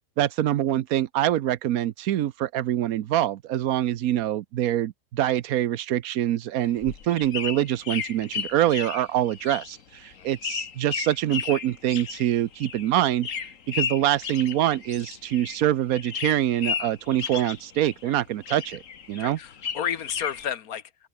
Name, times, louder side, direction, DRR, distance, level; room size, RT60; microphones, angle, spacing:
voice 1, 0.2-13.3 13.7-18.8 19.1-19.4, right 12 dB, 90° right, 1.2 m, -25 dB
sound 1, 6.6-15.7 15.9-18.2 18.4-20.5, left 7 dB, 65° left, 1.7 m, -34 dB
voice 2, 19.2-21.1, left 9 dB, 90° left, 1.6 m, -32 dB
open air
omnidirectional pair, 1.5 m